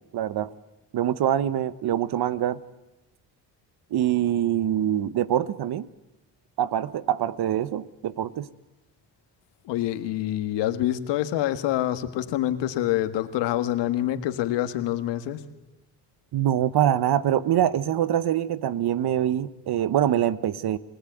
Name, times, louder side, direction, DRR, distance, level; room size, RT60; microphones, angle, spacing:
voice 1, 0.1-0.5 0.9-2.6 3.9-5.9 6.6-8.5 16.3-20.8, right 11 dB, 65° right, 16 dB, 1.2 m, -24 dB
voice 2, 9.6-15.4, left 13 dB, 85° left, 10 dB, 1.7 m, -26 dB
28.0 x 18.0 x 9.3 m, 1.0 s
cardioid pair, 85°, 42 cm